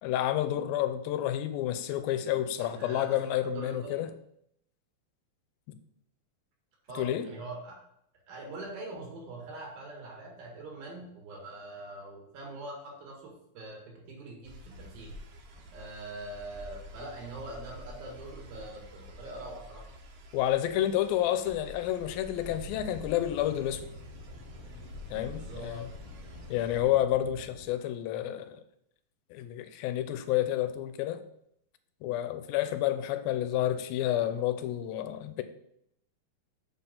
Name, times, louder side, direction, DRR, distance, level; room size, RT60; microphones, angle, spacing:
voice 1, 0.0-4.1 5.7-5.8 7.0-7.3 20.3-23.8 25.1-25.9 26.5-28.6 29.3-31.2 32.0-35.4, left 12 dB, 85° left, 2.4 m, -30 dB
voice 2, 2.6-4.1 6.8-7.8 8.3-15.1 15.5-19.9 25.3-25.8, right 1 dB, 80° right, 3.6 m, -43 dB
sound 1, 14.4-26.8, equal, 65° right, 2.1 m, -48 dB
sound 2, 22.4-27.7, left 2 dB, 70° left, 2.2 m, -48 dB
7.1 x 6.0 x 3.7 m
omnidirectional pair, 4.1 m